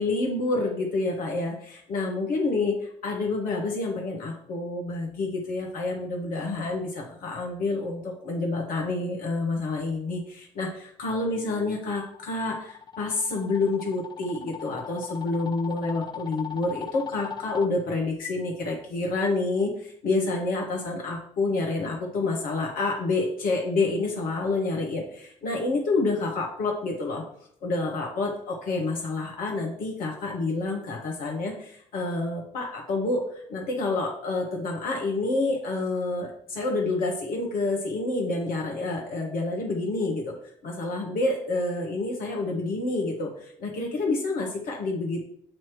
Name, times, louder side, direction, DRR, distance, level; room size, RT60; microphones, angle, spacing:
voice 1, 0.0-27.2 27.6-40.3 40.6-45.2, left 3 dB, 55° left, -1 dB, 1.2 m, -28 dB
sound 1, 11.7-17.7, left 8 dB, 25° left, 0.5 m, -39 dB
7.6 x 3.0 x 4.7 m, 0.64 s
figure-of-eight pair, 45°, 17 cm